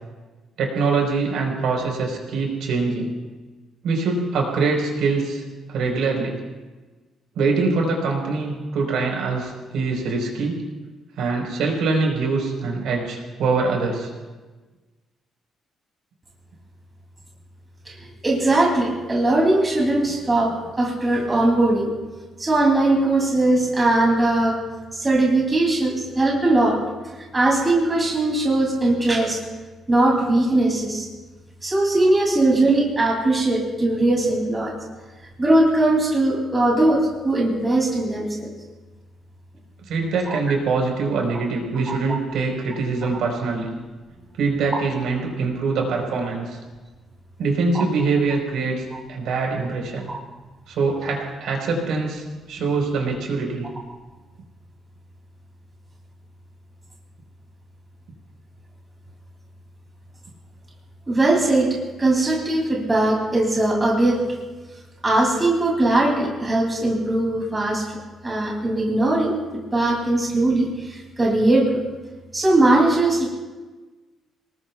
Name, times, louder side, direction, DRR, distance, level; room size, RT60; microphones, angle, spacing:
voice 1, 0.6-3.1 3.8-5.4 5.7-6.4 7.4-10.6 11.2-14.1 39.9-43.7 44.4-46.6 47.4-48.8 49.1-50.1 50.7-53.7, right 4 dB, 75° right, 1 dB, 4.3 m, -23 dB
voice 2, 17.9-21.9 22.4-24.6 24.9-29.4 29.9-31.1 31.6-34.7 35.4-38.5 40.2-40.4 41.9-42.0 44.7-44.8 50.1-50.2 61.1-64.2 65.0-67.8 68.2-69.4 69.7-71.8 72.3-73.3, right 2 dB, 15° right, -2 dB, 2.9 m, -20 dB
29.5 x 19.5 x 2.4 m, 1.3 s
cardioid pair, 170°, 0 cm